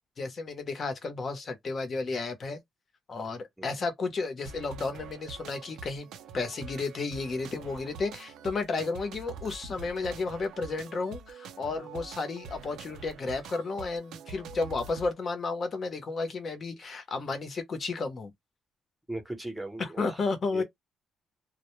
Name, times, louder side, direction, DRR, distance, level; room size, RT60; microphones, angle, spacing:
voice 1, 0.2-2.6 3.1-6.1 6.3-18.3 19.8-20.6, left 3 dB, 40° left, 0.7 m, -32 dB
sound 1, 4.4-15.1, right 5 dB, 90° right, 0.4 m, -45 dB
voice 2, 19.1-20.3 20.5-20.6, right 1 dB, 5° right, 0.7 m, -38 dB
2.1 x 2.1 x 2.9 m
cardioid pair, 145°, 0 cm